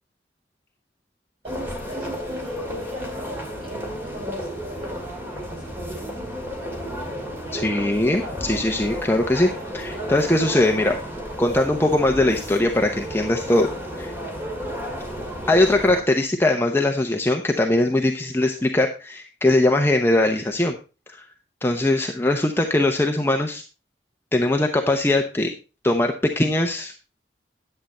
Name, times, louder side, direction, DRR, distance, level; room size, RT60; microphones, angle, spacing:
sound 1, 1.4-16.0, equal, 10° right, 2.1 m, -33 dB
voice 1, 1.4-6.1, equal, 30° right, -3 dB, 7.0 m, -37 dB
voice 2, 7.5-10.9 11.4-13.7 14.0-14.1 15.5-20.8 21.1-21.2 21.6-23.6 24.3-25.5 25.8-26.9, left 1 dB, 15° left, 3 dB, 0.8 m, -21 dB
10.5 x 7.8 x 4.2 m, 0.33 s
head